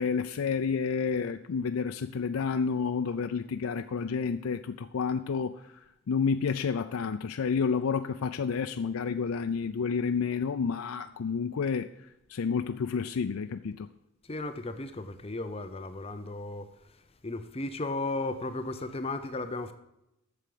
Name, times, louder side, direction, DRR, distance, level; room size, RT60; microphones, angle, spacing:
voice 1, 0.0-5.7 6.1-11.9 12.3-13.9, left 5 dB, 75° left, 0.4 m, -30 dB
voice 2, 14.2-19.7, left 2 dB, 25° left, 0.7 m, -35 dB
8.2 x 6.9 x 7.7 m
head